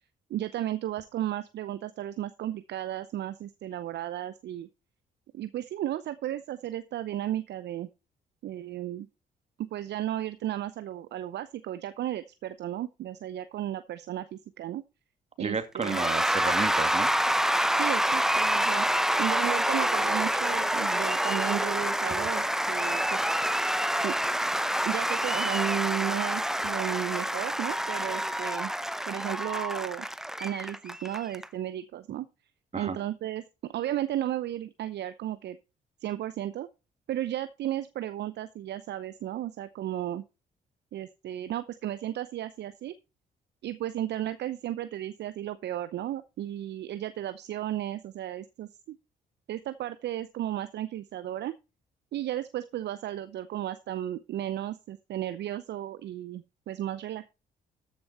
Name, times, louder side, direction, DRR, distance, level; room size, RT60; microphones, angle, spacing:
voice 1, 0.3-4.7 5.3-7.9 8.4-9.1 9.6-14.8 15.4-16.0 17.8-18.9 19.2-23.2 24.0-24.1 24.8-28.7 29.1-30.1 30.4-32.3 32.8-35.6 36.0-36.7 37.1-40.2 40.9-42.9 43.6-49.0 49.5-51.5 52.1-57.3, right 12 dB, 55° right, 13 dB, 0.7 m, -34 dB
voice 2, 15.4-17.1 32.7-33.0, right 4 dB, 30° right, 8 dB, 2.2 m, -32 dB
Cheering / Applause / Crowd, 15.8-31.4, equal, ahead, 0.7 m, -27 dB
13.5 x 6.3 x 4.2 m, 0.29 s
hypercardioid pair, 45°, 21 cm